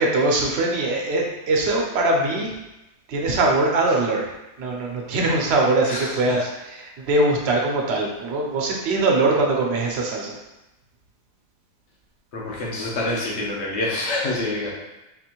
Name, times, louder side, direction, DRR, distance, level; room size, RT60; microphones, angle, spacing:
voice 1, 0.0-2.5 3.1-4.3 4.6-10.4, right 2 dB, 70° right, -1 dB, 0.9 m, -22 dB
voice 2, 5.9-6.4 12.3-14.7, left 2 dB, 80° left, -4 dB, 1.2 m, -27 dB
4.1 x 2.5 x 2.9 m, 0.99 s
omnidirectional pair, 1.2 m